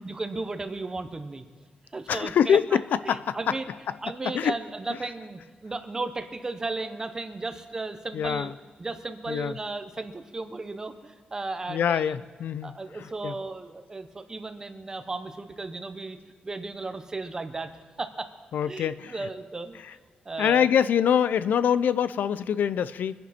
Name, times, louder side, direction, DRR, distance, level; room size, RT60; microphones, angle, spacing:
voice 1, 0.0-1.5 1.9-2.8 3.0-3.7 4.0-8.5 8.8-12.2 12.6-16.2 16.4-17.7 18.0-18.3 18.7-19.8 20.2-20.7, right 3 dB, 20° right, 8 dB, 0.9 m, -35 dB
voice 2, 2.1-2.8 3.1-3.4 4.3-4.5 8.1-8.5 9.3-9.5 11.7-12.8 13.2-13.3 18.5-19.1 20.4-23.1, left 8 dB, 90° left, 16 dB, 0.4 m, -24 dB
24.0 x 10.5 x 4.3 m, 1.5 s
wide cardioid pair, 165°, 3 cm